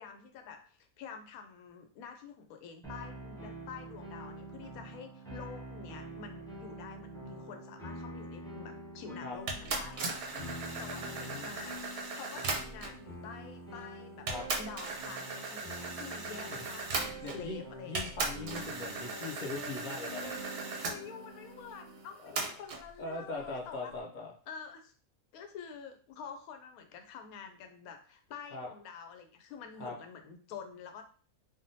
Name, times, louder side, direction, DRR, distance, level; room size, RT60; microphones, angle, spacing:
voice 1, 0.0-10.0 10.8-14.3 14.5-17.9 19.0-19.3 20.9-23.9 24.5-24.9 25.3-31.0, left 6 dB, 85° left, 5 dB, 1.0 m, -48 dB
sound 1, 2.8-22.1, right 1 dB, 5° left, 0.5 m, -46 dB
sound 2, 9.5-13.0 13.8-13.9 14.3-17.6 17.9-21.0 22.4-22.8, right 3 dB, 55° right, 0.7 m, -38 dB
voice 2, 10.3-11.5 14.3-14.4 16.5-16.6 17.2-17.6 17.9-20.6 22.2-22.3 23.0-24.3 28.5-28.7 29.8-29.9, left 3 dB, 50° left, -1 dB, 0.5 m, -41 dB
3.5 x 2.2 x 2.6 m, 0.41 s
omnidirectional pair, 1.5 m